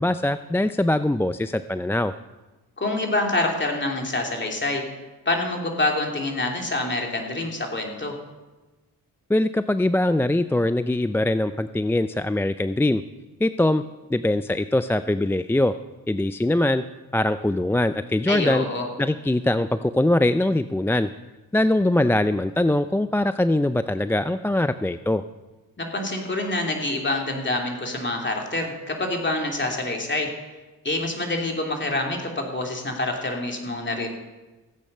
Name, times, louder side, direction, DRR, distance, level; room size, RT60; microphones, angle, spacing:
voice 1, 0.0-2.1 9.3-13.0 13.4-13.8 14.1-15.7 16.1-16.8 17.1-18.7 19.0-21.1 21.5-25.2, left 1 dB, 5° left, 12 dB, 0.3 m, -22 dB
voice 2, 2.8-4.8 5.2-8.2 18.3-18.9 25.8-30.3 30.8-34.1, left 2 dB, 30° left, 1 dB, 3.0 m, -26 dB
16.0 x 8.6 x 5.5 m, 1.1 s
supercardioid pair, 55°, 38 cm